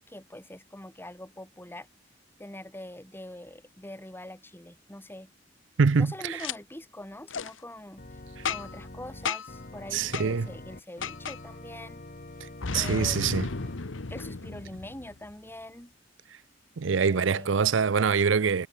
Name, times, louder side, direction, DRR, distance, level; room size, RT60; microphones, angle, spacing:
voice 1, 0.1-1.9 2.4-5.3 6.0-12.0 12.7-13.5 14.1-15.9 17.0-17.5, left 1 dB, 10° left, 3.6 m, -44 dB
voice 2, 5.8-6.4 9.9-10.5 12.4-12.5 12.7-13.5 16.8-18.7, right 5 dB, 70° right, 0.6 m, -24 dB
Boom, 6.4-6.6 7.3-7.5 8.5-8.9 9.3-9.6 10.1-10.3 11.0-11.4 12.6-15.3, left 5 dB, 75° left, 1.1 m, -34 dB
Organ, 8.0-13.8, left 1 dB, 45° left, 2.3 m, -45 dB
head